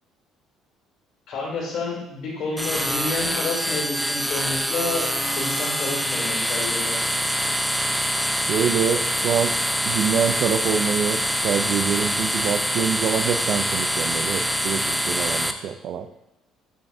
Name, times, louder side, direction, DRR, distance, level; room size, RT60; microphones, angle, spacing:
voice 1, 1.3-7.1, left 3 dB, 65° left, -3 dB, 2.2 m, -30 dB
sound 1, 2.6-15.5, equal, ahead, 0.4 m, -25 dB
voice 2, 8.5-9.5 9.9-16.1, right 7 dB, 60° right, 10 dB, 0.4 m, -25 dB
10.0 x 3.5 x 2.6 m, 0.95 s
cardioid pair, 105°, 0 cm